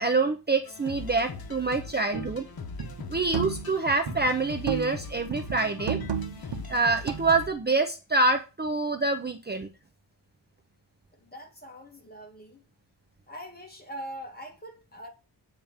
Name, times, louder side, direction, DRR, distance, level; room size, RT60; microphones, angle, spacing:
voice 1, 0.0-2.5 3.1-6.0 6.4-9.7, right 3 dB, 25° right, 0.7 m, -26 dB
sound 1, 0.7-7.5, left 4 dB, 55° left, 1.3 m, -41 dB
sound 2, 2.1-2.4 2.8-3.8 4.1-5.0 5.3-7.5, right 7 dB, 70° right, 1.1 m, -33 dB
voice 2, 11.1-12.6 13.3-15.1, equal, 20° left, 2.3 m, -42 dB
8.6 x 4.5 x 7.3 m
wide cardioid pair, 135°, 43 cm